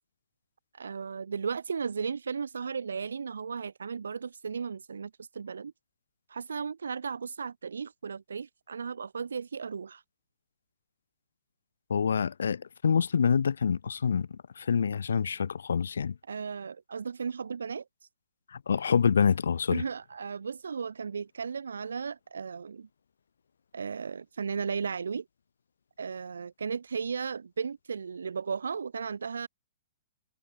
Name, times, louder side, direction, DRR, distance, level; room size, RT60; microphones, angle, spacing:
voice 1, 0.7-5.7 6.3-10.0 16.3-17.8 19.7-22.9 23.7-25.2 26.0-29.5, right 6 dB, 65° right, 1.9 m, -35 dB
voice 2, 11.9-14.3 14.6-16.1 18.7-19.8, left 6 dB, 65° left, 0.8 m, -26 dB
figure-of-eight pair, 110°, 0 cm